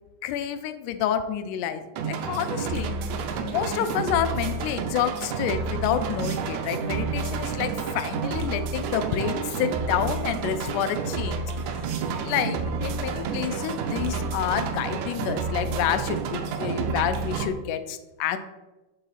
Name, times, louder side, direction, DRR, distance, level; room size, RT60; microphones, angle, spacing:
voice 1, 0.2-2.9 3.5-11.4 12.2-18.4, left 9 dB, 85° left, 10 dB, 2.1 m, -28 dB
sound 1, 2.0-17.5, right 5 dB, 80° right, 1.7 m, -30 dB
5.4 x 3.9 x 5.7 m, 1.1 s
omnidirectional pair, 3.6 m